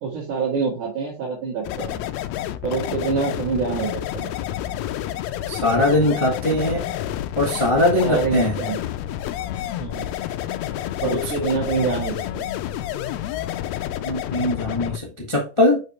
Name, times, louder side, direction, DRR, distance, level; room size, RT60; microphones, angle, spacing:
voice 1, 0.0-2.0 2.6-4.3 6.5-6.8 8.0-8.8 9.8-10.1 11.0-12.5, right 5 dB, 85° right, -7 dB, 3.7 m, -26 dB
sound 1, 1.6-15.0, left 12 dB, 80° left, 1.7 m, -29 dB
voice 2, 5.5-6.8 7.4-8.5 11.0-11.2 14.0-15.8, left 1 dB, 45° left, -1 dB, 0.4 m, -21 dB
6.6 x 5.1 x 3.1 m, 0.32 s
omnidirectional pair, 3.4 m